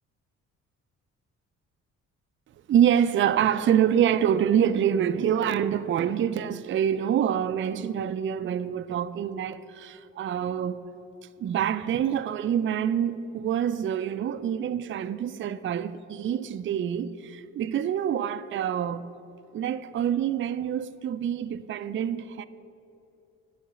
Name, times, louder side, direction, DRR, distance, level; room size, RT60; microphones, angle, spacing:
voice 1, 2.7-10.8 11.4-19.1 19.5-22.4, right 9 dB, 40° right, 0.4 m, -26 dB
10.0 x 5.7 x 7.4 m
cardioid pair, 90°, 30 cm